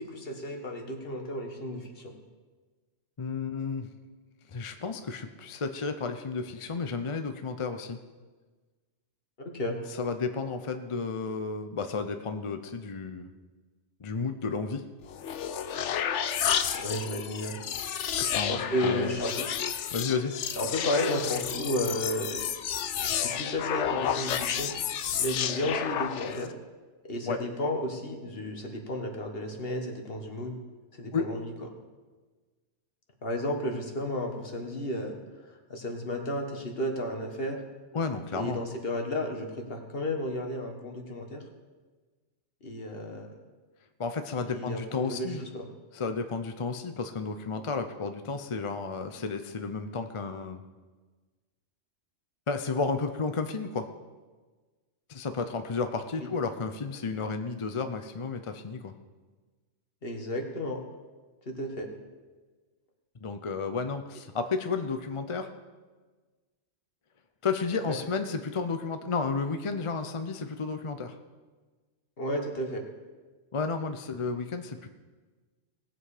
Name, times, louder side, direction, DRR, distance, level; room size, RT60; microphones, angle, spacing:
voice 1, 0.0-2.1 9.4-9.8 16.7-17.5 18.5-19.4 20.6-22.5 22.9-26.5 27.1-30.5 30.9-31.4 33.2-35.2 35.5-37.6 38.3-41.4 42.6-43.4 44.5-45.7 60.0-60.8 61.4-61.9 67.9-68.0 72.2-72.8, left 1 dB, 55° left, 3 dB, 1.7 m, -33 dB
voice 2, 3.2-3.9 4.5-8.0 9.9-13.3 14.0-14.8 18.2-19.1 19.9-20.3 27.3-27.4 31.1-31.3 37.9-38.6 44.0-45.4 45.9-50.6 52.5-53.9 55.1-58.9 63.2-65.5 67.4-71.2 73.5-74.9, left 4 dB, 35° left, 8 dB, 0.5 m, -32 dB
sound 1, 15.0-26.5, left 9 dB, 80° left, 1.0 m, -31 dB
18.5 x 7.7 x 5.0 m, 1.3 s
omnidirectional pair, 1.2 m